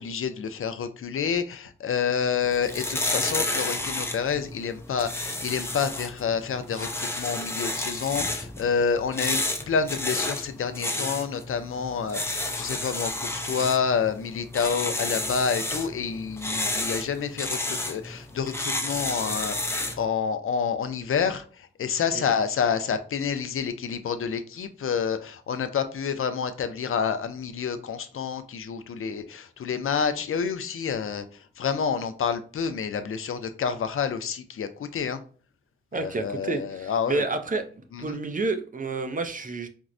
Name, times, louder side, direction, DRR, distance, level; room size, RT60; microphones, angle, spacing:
voice 1, 0.0-31.2 31.6-35.2 35.9-37.3 37.9-38.2, left 6 dB, 85° left, 0.4 m, -28 dB
sound 1, 2.4-20.1, left 2 dB, 10° left, 0.5 m, -31 dB
voice 2, 35.9-37.6 38.0-39.7, right 3 dB, 40° right, 0.5 m, -29 dB
4.4 x 2.0 x 2.5 m
wide cardioid pair, 90°, 21 cm